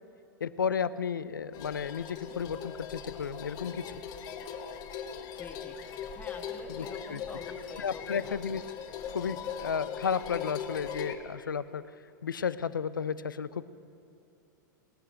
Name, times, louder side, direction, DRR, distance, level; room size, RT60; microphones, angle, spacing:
voice 1, 0.4-4.0 6.7-7.2 7.8-8.6 9.1-11.8 12.2-13.6, left 7 dB, 90° left, 16 dB, 0.5 m, -33 dB
sound 1, 1.5-11.1, left 7 dB, 40° left, 1.1 m, -40 dB
voice 2, 5.3-5.8 6.1-8.4, left 4 dB, 15° left, 4 dB, 1.3 m, -46 dB
20.0 x 6.7 x 6.5 m, 2.7 s
hypercardioid pair, 105°, 11 cm